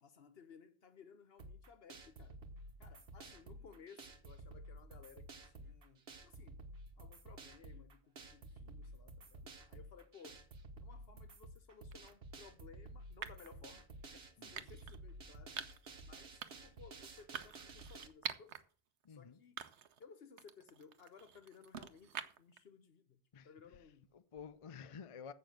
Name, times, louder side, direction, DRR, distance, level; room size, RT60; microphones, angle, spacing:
voice 1, 0.0-2.4 2.8-6.6 7.0-10.4 10.8-15.6 16.0-18.6 19.2-19.6 20.0-24.1, left 6 dB, 65° left, 1.2 m, -60 dB
sound 1, 1.4-18.1, right 2 dB, 65° right, 1.4 m, -53 dB
sound 2, 11.9-12.1 13.2-13.5 14.6-15.0 15.6-15.9 16.4-16.8 17.3-18.6 19.0-19.1 19.6-20.0 20.4-22.6, right 8 dB, 90° right, 1.1 m, -46 dB
voice 2, 14.4-14.7 19.0-19.4 23.3-25.3, left 6 dB, 40° left, 0.5 m, -53 dB
7.5 x 6.8 x 7.7 m
omnidirectional pair, 1.1 m